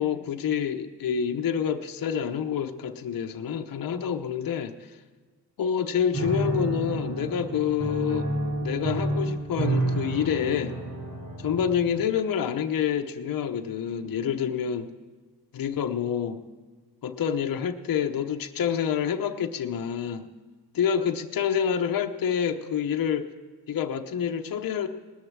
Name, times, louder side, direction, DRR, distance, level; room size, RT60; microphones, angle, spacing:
voice 1, 0.0-4.7 5.6-8.3 8.6-10.8 11.4-14.9 15.5-16.4 17.0-20.3 20.7-23.3 23.7-24.9, left 8 dB, 50° left, 6 dB, 0.9 m, -27 dB
Piano, 6.1-12.0, right 2 dB, 75° right, 3.3 m, -30 dB
19.0 x 6.8 x 8.7 m, 1.4 s
cardioid pair, 80°, 42 cm